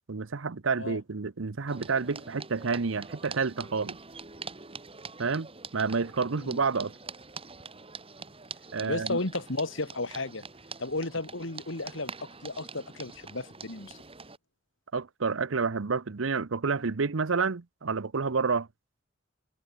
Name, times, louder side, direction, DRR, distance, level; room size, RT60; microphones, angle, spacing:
voice 1, 0.1-4.0 5.2-5.5 5.7-6.9 8.7-9.2 14.9-18.7, right 4 dB, 80° right, 0.8 m, -29 dB
sound 1, 1.7-14.4, right 5 dB, 30° right, 3.7 m, -45 dB
voice 2, 8.8-10.4 10.8-14.0, left 2 dB, 70° left, 2.6 m, -34 dB
head